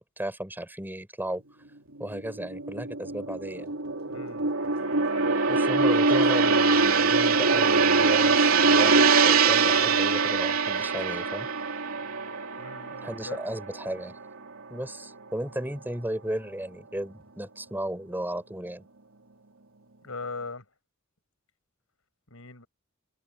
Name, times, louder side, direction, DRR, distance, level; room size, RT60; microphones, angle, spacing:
voice 1, 0.0-1.4 2.0-3.7 5.5-11.5 13.0-14.2 14.7-18.9, right 1 dB, 10° right, 5.6 m, -35 dB
Gong, 2.0-14.5 14.8-15.1, right 4 dB, 70° right, 3.4 m, -23 dB
voice 2, 4.1-4.5 12.6-13.4 20.0-20.6 22.3-22.7, left 3 dB, 70° left, 6.1 m, -39 dB
head